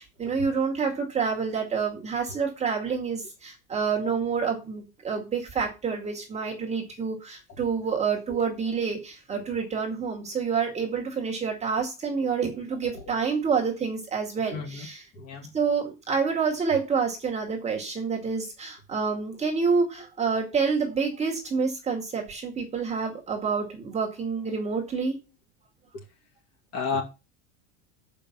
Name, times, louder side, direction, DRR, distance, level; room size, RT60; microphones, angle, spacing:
voice 1, 0.0-15.0 15.5-25.2, right 5 dB, 15° right, 0 dB, 2.0 m, -28 dB
voice 2, 14.5-14.9 15.1-15.5 25.9-26.0 26.7-27.0, left 4 dB, 35° left, 1 dB, 2.5 m, -32 dB
6.9 x 5.4 x 7.2 m, 0.28 s
supercardioid pair, 160°, 42 cm